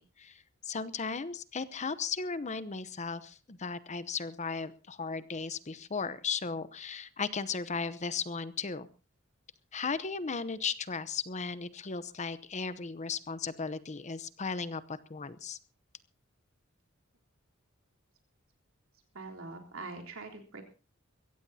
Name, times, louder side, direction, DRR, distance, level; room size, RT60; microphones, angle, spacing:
voice 1, 0.0-8.9 9.7-15.6, left 5 dB, 35° left, 15 dB, 0.8 m, -36 dB
voice 2, 19.1-20.6, right 3 dB, 90° right, 2 dB, 3.5 m, -43 dB
23.0 x 16.0 x 2.8 m, 0.34 s
head